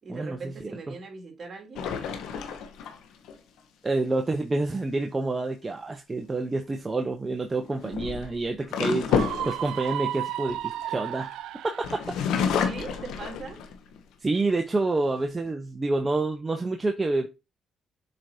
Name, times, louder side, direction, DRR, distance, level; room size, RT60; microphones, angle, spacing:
voice 1, 0.0-1.9 12.6-13.6, right 4 dB, 45° right, 2.9 m, -40 dB
sound 1, 1.8-3.4 6.3-6.6 7.6-11.3 11.8-14.0 14.5-14.6 15.0-15.5, left 6 dB, 85° left, 1.2 m, -30 dB
voice 2, 3.8-11.3 11.6-11.7 14.2-17.3, right 2 dB, 25° right, 0.9 m, -28 dB
Screaming, 9.1-12.0, right 13 dB, 85° right, 0.4 m, -33 dB
7.4 x 4.7 x 2.8 m
cardioid pair, 90°, 0 cm